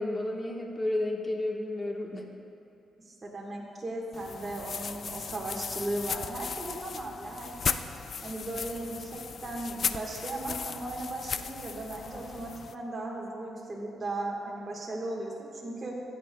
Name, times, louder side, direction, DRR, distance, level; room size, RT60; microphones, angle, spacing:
voice 1, 0.0-2.3, left 1 dB, 25° left, 0 dB, 1.2 m, -31 dB
voice 2, 3.0-7.8 8.2-16.0, right 2 dB, 30° right, -3 dB, 1.3 m, -37 dB
sound 1, 4.1-12.7, left 6 dB, 50° left, 0.3 m, -36 dB
15.5 x 9.1 x 2.2 m, 2.8 s
cardioid pair, 100°, 0 cm